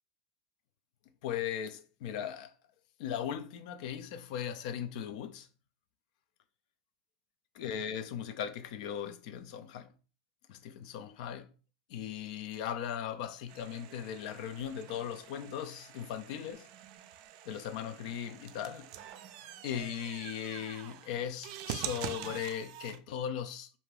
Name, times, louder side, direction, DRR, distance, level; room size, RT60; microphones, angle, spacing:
voice 1, 1.2-2.5 3.0-5.5 7.5-9.9 10.5-11.5 11.9-16.7 17.5-18.9 19.6-23.7, left 9 dB, 70° left, 0.4 m, -38 dB
sound 1, 13.5-23.0, right 10 dB, 65° right, 0.3 m, -45 dB
2.6 x 2.3 x 3.2 m
hypercardioid pair, 105°, 4 cm